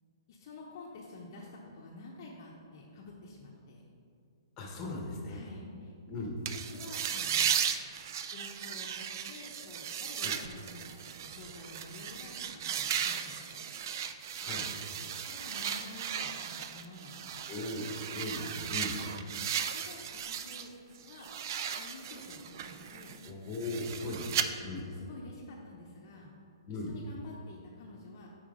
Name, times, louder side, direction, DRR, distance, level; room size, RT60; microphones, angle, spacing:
voice 1, 0.3-3.8 5.3-6.3 6.7-7.6 8.3-13.7 14.0-14.6 14.9-17.9 19.0-20.7 21.0-21.3 21.7-23.2 24.1-24.2 24.8-26.3 26.7-28.3, left 2 dB, 40° left, -2 dB, 0.7 m, -50 dB
voice 2, 4.6-5.4 6.1-6.3 10.2-10.4 14.4-14.7 17.5-19.0 23.2-24.8 26.7-26.9, left 2 dB, 20° left, -1 dB, 1.0 m, -38 dB
sound 1, 6.4-20.7 21.0-24.4, right 8 dB, 45° right, 0.3 m, -36 dB
5.7 x 4.5 x 5.0 m, 2.4 s
hypercardioid pair, 160°, 3 cm